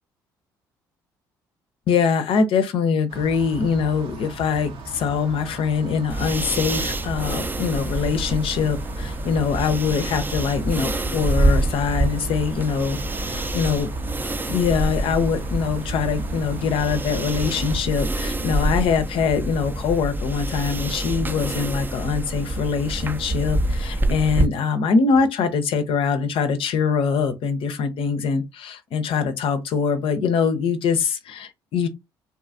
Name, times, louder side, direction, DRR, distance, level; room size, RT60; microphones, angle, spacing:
voice 1, 1.9-13.9 14.5-31.9, left 6 dB, 60° left, 0.5 m, -23 dB
sound 1, 3.1-17.8, right 3 dB, 55° right, 0.7 m, -38 dB
sound 2, 6.1-24.5, right 1 dB, 20° right, 0.4 m, -26 dB
2.7 x 2.3 x 2.5 m
hypercardioid pair, 50°, 11 cm